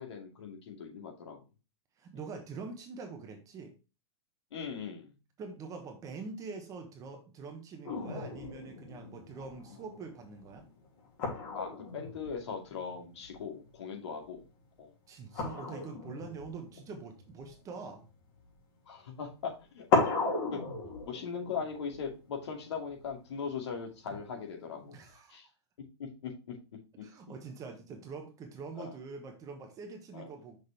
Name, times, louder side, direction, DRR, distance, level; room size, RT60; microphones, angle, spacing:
voice 1, 0.0-1.4 4.5-5.1 7.9-8.0 11.5-14.5 14.8-14.9 18.9-19.9 20.5-20.6 21.0-24.9 25.3-25.5 26.0-26.6 27.0-27.1 28.8-29.0 30.1-30.3, left 6 dB, 75° left, 0 dB, 2.4 m, -40 dB
voice 2, 2.0-3.7 5.4-10.7 15.1-18.1 24.9-25.4 27.0-30.6, right 4 dB, 25° right, 4 dB, 1.1 m, -44 dB
sound 1, 7.8-13.7 14.0-14.4 15.3-18.6 19.4-19.5 19.9-23.1 24.1-25.1, left 3 dB, 55° left, 2.9 m, -36 dB
6.1 x 5.1 x 3.3 m, 0.31 s
hypercardioid pair, 140°, 14 cm